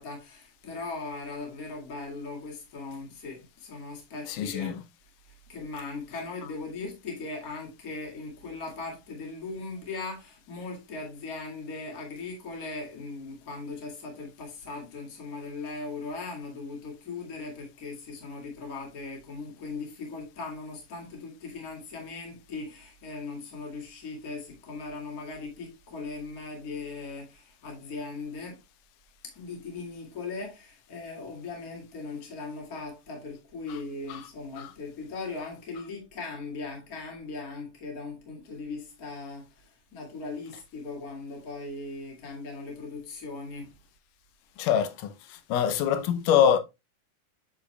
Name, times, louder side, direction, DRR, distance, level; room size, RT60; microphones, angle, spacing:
voice 1, 0.0-4.8 5.5-28.6 29.2-39.5 39.9-43.7, left 3 dB, 30° left, 2.1 m, -39 dB
voice 2, 4.4-4.7 44.6-45.1 45.5-46.6, left 9 dB, 80° left, 2.2 m, -23 dB
7.3 x 6.8 x 2.2 m
omnidirectional pair, 3.8 m